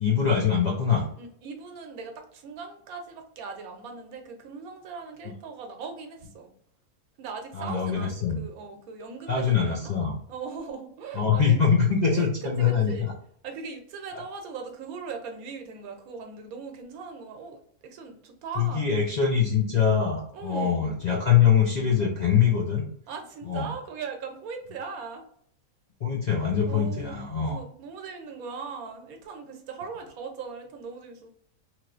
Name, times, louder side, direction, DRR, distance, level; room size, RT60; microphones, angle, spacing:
voice 1, 0.0-1.1 7.5-8.4 9.3-10.2 11.1-13.1 18.6-22.8 23.4-23.7 26.0-27.6, left 7 dB, 60° left, -2 dB, 0.4 m, -23 dB
voice 2, 1.2-6.5 7.2-9.9 10.3-11.5 12.1-12.3 12.7-13.1 13.4-19.0 20.3-20.9 23.1-25.2 26.7-27.2 27.5-31.3, right 5 dB, 85° right, 5 dB, 1.1 m, -39 dB
3.0 x 2.9 x 2.4 m, 0.65 s
omnidirectional pair, 1.5 m